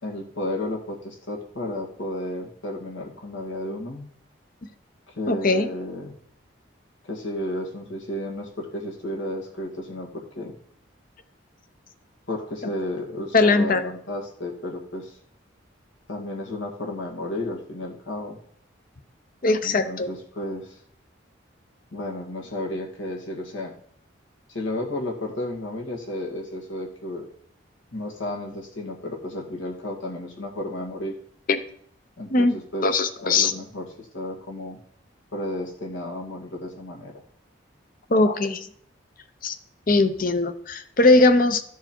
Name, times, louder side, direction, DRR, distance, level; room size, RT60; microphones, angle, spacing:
voice 1, 0.0-4.1 5.1-6.2 7.1-10.6 12.3-15.2 16.1-18.4 19.6-20.8 21.9-23.7 24.5-27.3 27.9-31.2 32.2-32.9 33.2-34.8 35.3-37.2, left 1 dB, 70° left, 0 dB, 2.0 m, -32 dB
voice 2, 5.3-5.7 12.6-12.7 13.3-13.8 19.4-20.1 31.5-31.6 32.3-33.5 38.1-38.7 39.4-39.5 39.9-41.6, left 2 dB, 45° left, 11 dB, 0.7 m, -20 dB
13.5 x 4.7 x 4.5 m, 0.65 s
head